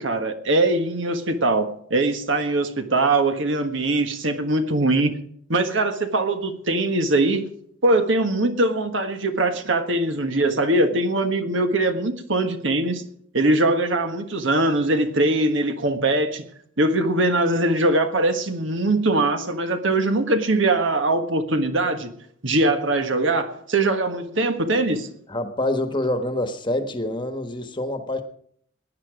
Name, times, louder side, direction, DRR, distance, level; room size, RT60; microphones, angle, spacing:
voice 1, 0.0-5.2 5.5-7.4 7.8-13.0 13.3-16.4 16.8-22.1 22.4-25.1, right 2 dB, 65° right, 7 dB, 1.5 m, -22 dB
voice 2, 25.3-28.2, left 1 dB, 25° left, 8 dB, 1.3 m, -26 dB
18.0 x 10.0 x 5.0 m, 0.63 s
head